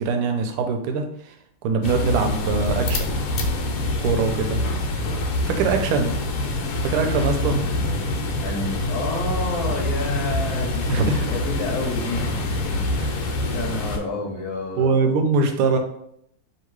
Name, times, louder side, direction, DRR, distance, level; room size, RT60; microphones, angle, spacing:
voice 1, 0.0-1.3 1.6-3.0 4.0-4.6 5.5-6.1 6.8-7.6 10.9-11.2 13.0-13.1 14.8-15.8, right 4 dB, 90° right, 5 dB, 1.6 m, -22 dB
sound 1, 1.8-14.0, left 1 dB, 80° left, 1.5 m, -25 dB
voice 2, 8.4-13.0 13.4-15.0, left 2 dB, 60° left, -2 dB, 1.1 m, -30 dB
3.4 x 2.8 x 4.6 m, 0.72 s
omnidirectional pair, 2.3 m